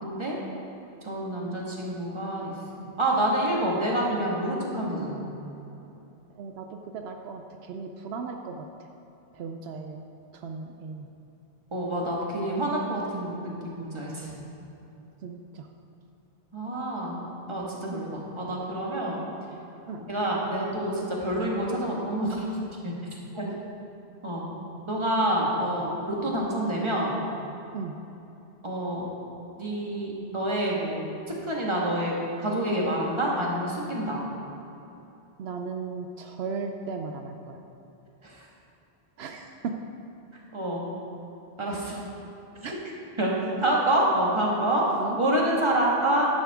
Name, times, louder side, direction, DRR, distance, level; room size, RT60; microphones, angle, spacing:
voice 1, 0.0-0.3 1.0-5.2 11.7-14.3 16.5-17.2 17.5-19.2 20.1-22.5 22.8-22.9 23.3-23.4 24.2-24.5 24.9-27.1 28.6-29.0 29.6-31.1 31.4-32.1 32.4-34.2 38.2-38.5 40.5-40.8 41.6-42.0 43.2-43.3 43.6-44.8 45.1-46.3, right 1 dB, 30° right, -3 dB, 1.7 m, -27 dB
voice 2, 6.3-8.7 9.4-10.0 10.3-11.1 15.2-15.7 17.9-18.1 19.9-20.0 23.4-23.6 27.7-27.9 35.4-37.6 39.2-39.7 41.7-41.8 42.6-42.8 45.0-45.2, right 5 dB, 80° right, 4 dB, 0.9 m, -36 dB
11.0 x 10.5 x 3.6 m, 2.9 s
omnidirectional pair, 1.1 m